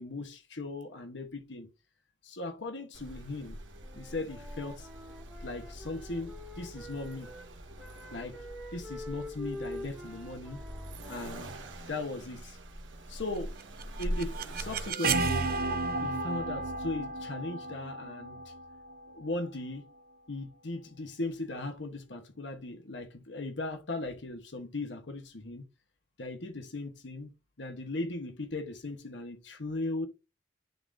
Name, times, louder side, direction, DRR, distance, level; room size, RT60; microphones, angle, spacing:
voice 1, 0.0-1.7 2.2-3.6 3.9-4.9 5.4-7.3 8.1-8.4 8.7-10.6 11.1-11.5 11.9-12.6 13.1-13.6 14.0-15.5 16.0-18.4 19.1-19.9 20.3-25.6 26.2-27.3 27.6-30.1, left 2 dB, 75° left, 1.1 m, -38 dB
Accelerating revving vroom, 2.9-14.9, equal, 90° right, 1.4 m, -43 dB
Wind instrument woodwind instrument, 3.8-7.5 7.8-12.2, left 1 dB, 5° right, 1.9 m, -46 dB
sound 1, 13.6-19.5, right 3 dB, 50° right, 0.7 m, -33 dB
10.5 x 3.7 x 2.6 m
head